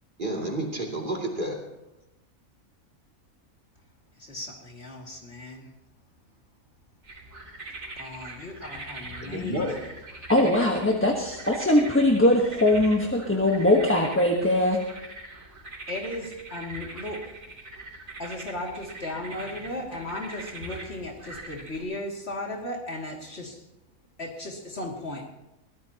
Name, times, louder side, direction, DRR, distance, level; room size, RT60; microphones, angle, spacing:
voice 1, 0.2-1.6 9.2-9.8 19.3-19.9, right 1 dB, 35° right, 0 dB, 2.9 m, -31 dB
voice 2, 4.2-5.7 8.0-9.7 15.9-17.2 18.2-23.6 24.2-25.3, left 1 dB, 50° left, 0 dB, 2.7 m, -36 dB
sound 1, 7.0-21.8, right 2 dB, 65° right, 3.9 m, -42 dB
voice 3, 10.3-14.8, left 1 dB, 10° left, 0 dB, 1.2 m, -21 dB
22.5 x 17.0 x 2.9 m, 0.91 s
omnidirectional pair, 1.5 m